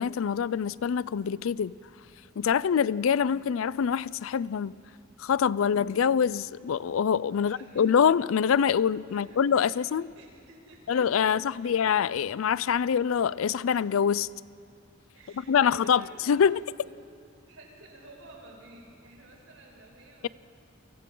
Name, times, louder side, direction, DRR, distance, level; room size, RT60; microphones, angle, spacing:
voice 1, 0.0-1.7 2.4-4.8 5.2-10.1 10.9-14.3 15.5-16.6, left 7 dB, 85° left, 0.4 m, -25 dB
voice 2, 7.3-8.0 9.1-9.3 9.5-9.9 10.1-11.8 12.8-12.9 15.1-16.4 16.8-16.9 17.5-20.3, right 2 dB, 85° right, 6.2 m, -51 dB
30.0 x 24.0 x 3.8 m
head